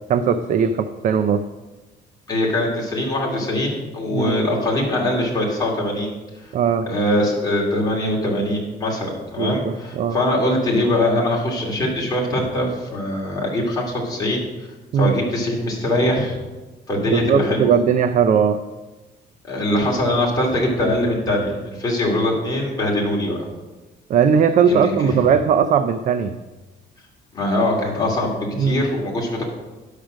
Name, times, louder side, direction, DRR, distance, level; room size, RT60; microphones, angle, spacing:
voice 1, 0.1-1.5 4.1-4.4 6.5-6.9 9.4-10.2 14.9-15.1 17.1-18.6 24.1-26.3 28.6-28.8, right 7 dB, 45° right, 9 dB, 0.5 m, -18 dB
voice 2, 2.3-6.5 6.9-14.5 14.9-16.4 16.9-17.7 19.5-23.4 24.7-25.2 27.3-29.4, left 1 dB, 20° left, -3 dB, 2.6 m, -22 dB
10.0 x 6.6 x 6.2 m, 1.2 s
cardioid pair, 165°, 18 cm